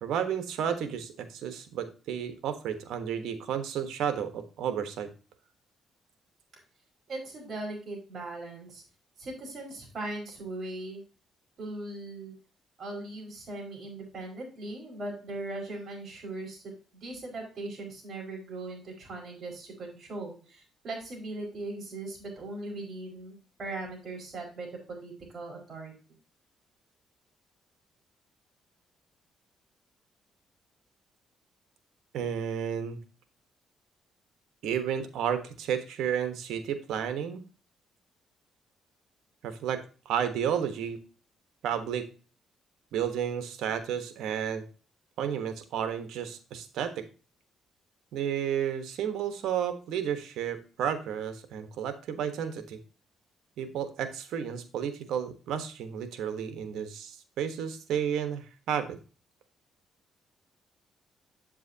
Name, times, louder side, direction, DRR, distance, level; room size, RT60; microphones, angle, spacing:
voice 1, 0.0-5.1 32.1-33.0 34.6-37.4 39.4-41.0 41.6-42.1 42.9-44.6 45.2-47.0 48.1-52.8 53.6-59.0, right 8 dB, 80° right, 9 dB, 1.2 m, -32 dB
voice 2, 7.1-8.8 9.2-11.0 11.6-12.3 12.8-25.9, right 2 dB, 50° right, 0 dB, 5.0 m, -39 dB
8.3 x 7.6 x 2.8 m, 0.35 s
cardioid pair, 90°, 0 cm